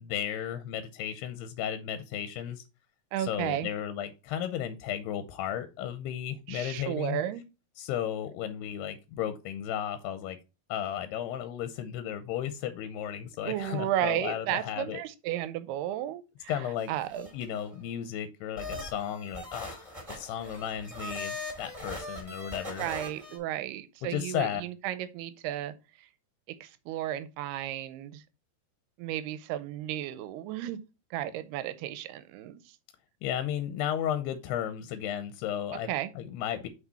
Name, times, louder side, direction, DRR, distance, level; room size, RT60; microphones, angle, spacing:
voice 1, 0.0-2.6 3.2-7.2 7.8-10.4 10.7-15.0 16.5-16.9 17.3-22.9 24.0-24.6 33.2-35.9 36.2-36.7, left 10 dB, 90° left, 2.7 m, -34 dB
voice 2, 3.1-3.7 6.5-7.4 13.4-17.3 22.8-26.1 26.5-28.2 29.0-30.8 31.1-32.8 35.7-36.1, right 12 dB, 85° right, 2.6 m, -34 dB
sound 1, 16.8-17.8 18.6-23.4, left 1 dB, 10° right, 2.6 m, -40 dB
6.1 x 5.7 x 4.1 m
omnidirectional pair, 4.7 m